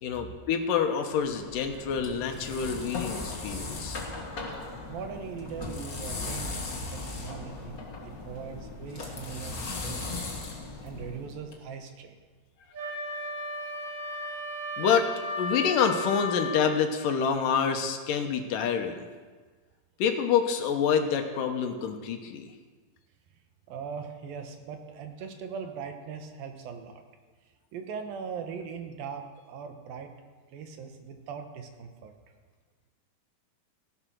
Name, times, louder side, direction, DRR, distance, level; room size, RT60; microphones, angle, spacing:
voice 1, 0.0-4.0 14.8-15.1 15.4-19.1 20.0-22.5, left 7 dB, 75° left, 5 dB, 2.6 m, -27 dB
sound 1, 1.2-11.5, left 3 dB, 35° left, 1.6 m, -38 dB
voice 2, 4.9-7.8 8.0-10.3 10.8-12.2 23.7-27.0 27.7-30.1 30.5-32.1, right 6 dB, 80° right, 6 dB, 3.0 m, -40 dB
Wind instrument woodwind instrument, 12.7-16.7, left 1 dB, 50° right, 8.1 m, -35 dB
16.0 x 11.5 x 6.3 m, 1.4 s
omnidirectional pair, 4.2 m